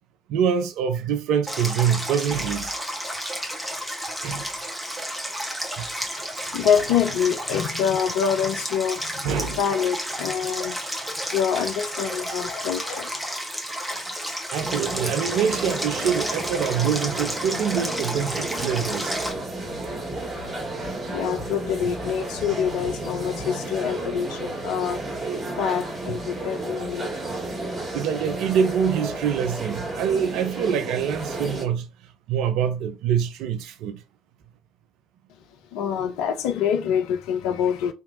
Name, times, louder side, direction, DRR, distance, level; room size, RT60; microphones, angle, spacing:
voice 1, 0.3-2.8 4.0-4.5 5.1-5.2 5.8-5.9 9.2-9.6 13.9-14.1 14.5-19.2 26.1-26.2 27.9-31.9 32.3-34.0, right 8 dB, 60° right, 0.5 m, -25 dB
Stream, 1.5-19.3, equal, 5° right, 1.2 m, -32 dB
voice 2, 6.5-10.8 11.3-13.2 20.4-20.7 21.1-25.0 25.6-27.3 35.7-37.9, left 8 dB, 65° left, 0.5 m, -26 dB
sound 1, 14.6-31.6, right 2 dB, 40° right, 1.7 m, -32 dB
sound 2, 19.2-24.2, left 3 dB, 40° left, 1.6 m, -44 dB
3.5 x 2.9 x 2.7 m
figure-of-eight pair, 50°, 0 cm